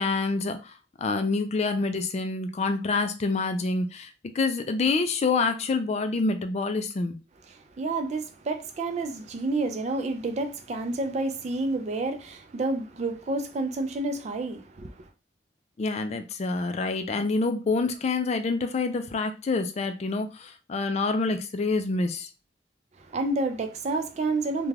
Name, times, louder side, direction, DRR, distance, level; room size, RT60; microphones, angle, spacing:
voice 1, 0.0-7.2 15.8-22.3, left 3 dB, 40° left, 0.3 m, -27 dB
voice 2, 7.5-15.1 23.0-24.7, right 2 dB, 40° right, 0.4 m, -29 dB
2.4 x 2.2 x 3.2 m
head